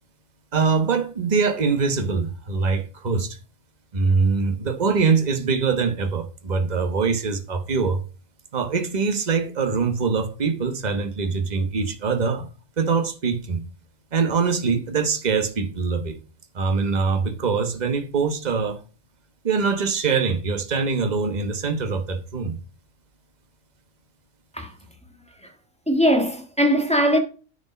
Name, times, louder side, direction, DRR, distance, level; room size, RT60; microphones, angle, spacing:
voice 1, 0.5-3.4 3.9-8.0 8.5-12.5 12.8-13.6 14.1-16.2 16.5-18.8 19.4-22.6, right 5 dB, 35° right, 1.2 m, -23 dB
voice 2, 25.9-27.2, equal, 5° left, 1.5 m, -20 dB
9.6 x 5.1 x 5.1 m
omnidirectional pair, 1.3 m